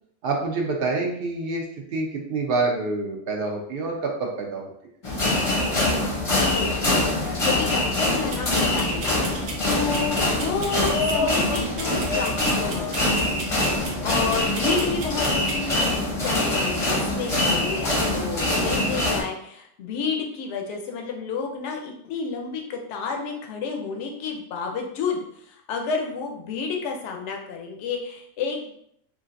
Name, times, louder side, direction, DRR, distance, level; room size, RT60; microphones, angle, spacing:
voice 1, 0.2-1.6 1.9-4.7, right 3 dB, 60° right, 0 dB, 0.6 m, -27 dB
sound 1, 5.0-19.2, left 1 dB, 35° left, 0.6 m, -24 dB
voice 2, 5.9-6.9 7.4-9.2 9.6-13.4 13.7-25.2 25.5-28.7, left 5 dB, 70° left, 2 dB, 0.8 m, -30 dB
sound 2, 8.3-15.9, right 3 dB, 85° right, 1.1 m, -37 dB
3.1 x 2.4 x 2.5 m, 0.71 s
omnidirectional pair, 1.3 m